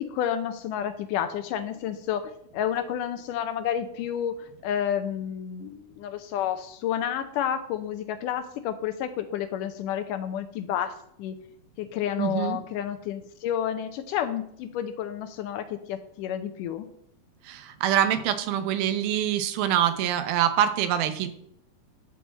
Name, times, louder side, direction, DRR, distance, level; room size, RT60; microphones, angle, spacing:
voice 1, 0.0-4.4 4.6-10.9 11.2-11.4 11.8-16.9, left 9 dB, 75° left, 10 dB, 2.0 m, -30 dB
voice 2, 12.2-12.6 17.4-21.3, right 10 dB, 80° right, 10 dB, 2.7 m, -25 dB
11.5 x 4.7 x 7.3 m, 0.69 s
omnidirectional pair, 4.3 m